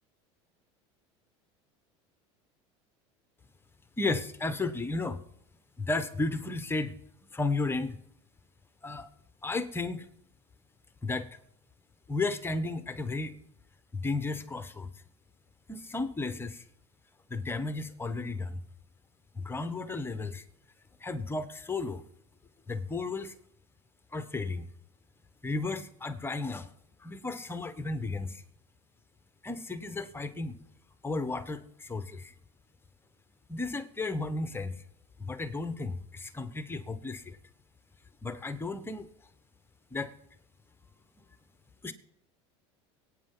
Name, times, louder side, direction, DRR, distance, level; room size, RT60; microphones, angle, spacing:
voice 1, 4.0-5.2 5.8-6.9 7.3-8.0 8.8-9.1 9.4-10.1 11.0-11.3 12.1-13.4 13.9-14.9 15.7-16.6 17.3-18.6 19.3-20.4 21.0-22.0 22.7-23.3 24.1-24.7 25.4-26.7 27.0-28.4 29.4-30.6 31.0-32.3 33.5-34.8 35.2-37.4 38.2-39.1 39.9-40.1 41.8-41.9, left 3 dB, 15° left, 11 dB, 1.1 m, -33 dB
23.0 x 9.1 x 3.9 m, 0.75 s
supercardioid pair, 95°, 15 cm